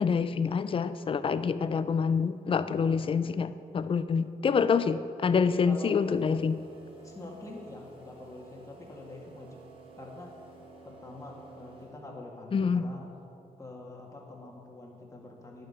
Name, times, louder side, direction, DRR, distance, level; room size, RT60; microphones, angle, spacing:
voice 1, 0.0-6.6 12.5-12.9, left 5 dB, 35° left, 13 dB, 0.4 m, -27 dB
voice 2, 5.7-6.0 7.0-9.6 10.0-10.3 10.8-13.1 13.6-15.7, left 2 dB, 20° left, -2 dB, 2.0 m, -45 dB
sound 1, 6.0-12.3, right 3 dB, 35° right, 1.7 m, -52 dB
9.6 x 6.8 x 5.6 m, 2.6 s
cardioid pair, 70°, 15 cm